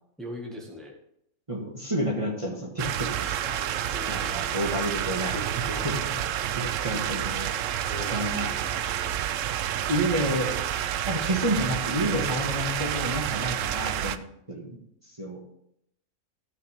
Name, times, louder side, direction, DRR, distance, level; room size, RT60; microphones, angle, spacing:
voice 1, 0.2-0.9 3.9-4.4 5.7-6.1 7.7-9.1, left 1 dB, ahead, 0 dB, 1.6 m, -41 dB
voice 2, 1.5-3.6 4.0-6.2 6.5-7.5 8.0-8.5 9.9-10.6 11.0-14.2 14.5-14.7 15.2-15.4, right 1 dB, 25° right, -3 dB, 1.7 m, -30 dB
sound 1, 2.8-14.2, right 10 dB, 70° right, 0.9 m, -29 dB
14.0 x 6.1 x 3.5 m, 0.76 s
omnidirectional pair, 1.5 m